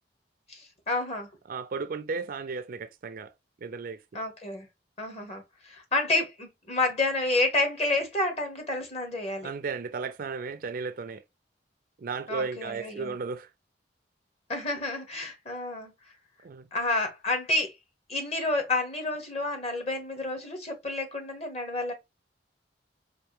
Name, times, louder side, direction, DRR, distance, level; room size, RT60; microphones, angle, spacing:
voice 1, 0.5-1.3 4.1-4.7 5.0-9.5 12.3-13.1 14.5-15.9 16.7-17.7 18.1-21.9, left 2 dB, 35° left, 1.3 m, -29 dB
voice 2, 1.5-3.3 3.6-4.0 9.4-11.2 12.0-13.5 16.4-16.7, right 4 dB, 50° right, 0.4 m, -34 dB
4.4 x 2.6 x 3.0 m
head